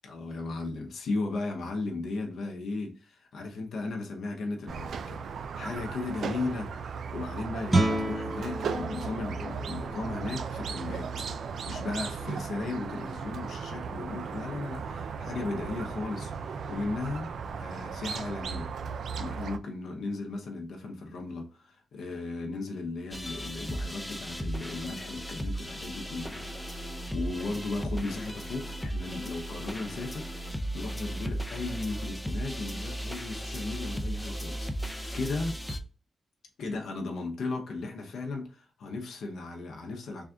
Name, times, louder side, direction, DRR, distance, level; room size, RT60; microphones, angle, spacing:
voice 1, 0.0-18.7 19.2-35.6 36.6-40.2, left 3 dB, 80° left, 0.7 m, -36 dB
Squeak, 4.7-19.6, right 6 dB, 70° right, 0.3 m, -36 dB
Guitar, 7.7-13.2, right 1 dB, 25° right, 0.7 m, -33 dB
sound 1, 23.1-35.8, right 1 dB, 10° left, 0.5 m, -36 dB
3.5 x 2.3 x 3.6 m
cardioid pair, 85°, 0 cm